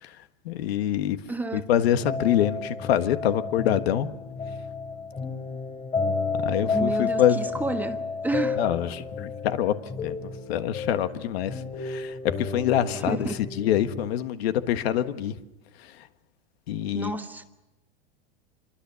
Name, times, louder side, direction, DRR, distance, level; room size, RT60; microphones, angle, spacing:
voice 1, 0.0-1.2 1.5-4.1 6.4-7.5 8.6-9.7 10.0-15.4 15.8-16.1 16.7-17.1, left 10 dB, 75° left, 1.6 m, -26 dB
voice 2, 1.3-1.7 6.7-8.6 13.1-13.4 16.9-17.4, right 2 dB, 5° right, 1.3 m, -30 dB
sound 1, 1.8-14.1, left 4 dB, 20° left, 3.1 m, -32 dB
27.5 x 23.5 x 7.0 m
supercardioid pair, 145°, 31 cm